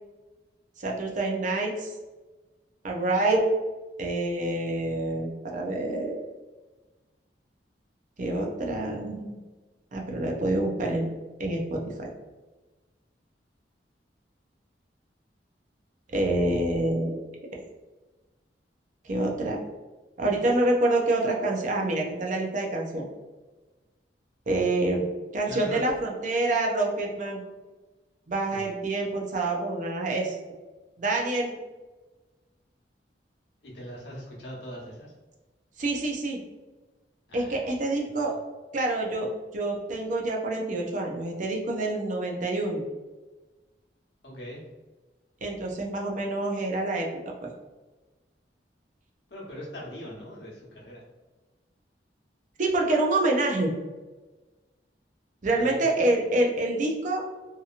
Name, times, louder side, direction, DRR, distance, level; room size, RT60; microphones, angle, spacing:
voice 1, 0.8-1.9 2.8-3.4 4.0-6.3 8.2-9.4 9.9-11.1 11.4-12.1 16.1-17.2 19.0-19.6 20.2-23.1 24.5-25.1 25.3-27.4 28.3-30.4 31.0-31.5 35.8-36.4 37.3-38.4 38.7-42.8 45.4-47.5 52.6-53.7 55.4-57.2, right 2 dB, 45° right, 0 dB, 0.5 m, -27 dB
voice 2, 25.4-25.8 28.5-28.7 33.6-35.1 37.3-37.7 38.0-38.3 44.2-44.6 49.3-51.0 55.6-55.8, equal, 90° left, -4 dB, 1.0 m, -40 dB
2.8 x 2.7 x 2.4 m, 1.2 s
head